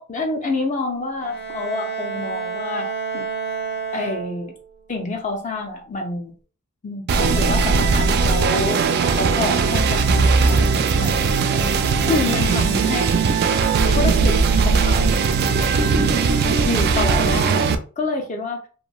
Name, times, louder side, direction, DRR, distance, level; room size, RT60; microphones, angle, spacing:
voice 1, 0.0-2.9 3.1-3.3 3.9-4.5 4.9-6.3 6.8-11.3 12.1-13.3 13.9-15.1 16.6-18.6, left 3 dB, 35° left, 2 dB, 0.4 m, -27 dB
Bowed string instrument, 1.2-4.7, right 5 dB, 50° left, 1.1 m, -29 dB
sound 1, 7.1-17.7, right 4 dB, 45° right, 0.3 m, -18 dB
2.9 x 2.6 x 2.2 m, 0.38 s
head